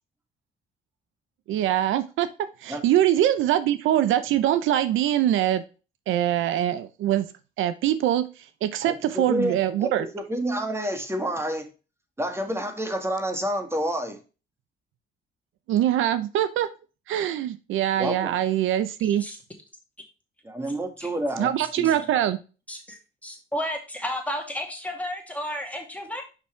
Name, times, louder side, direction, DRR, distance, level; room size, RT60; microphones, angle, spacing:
voice 1, 1.5-5.6 6.1-7.3 7.6-8.2 8.6-10.1 15.7-16.7 17.1-19.3 21.4-22.4, right 12 dB, 85° right, 0.7 m, -23 dB
voice 2, 8.8-11.7 12.2-14.2 18.0-18.4 20.4-21.9, equal, 10° right, 1.8 m, -29 dB
voice 3, 22.7-26.2, equal, 5° left, 2.4 m, -32 dB
6.1 x 6.0 x 3.3 m
cardioid pair, 90°, 20 cm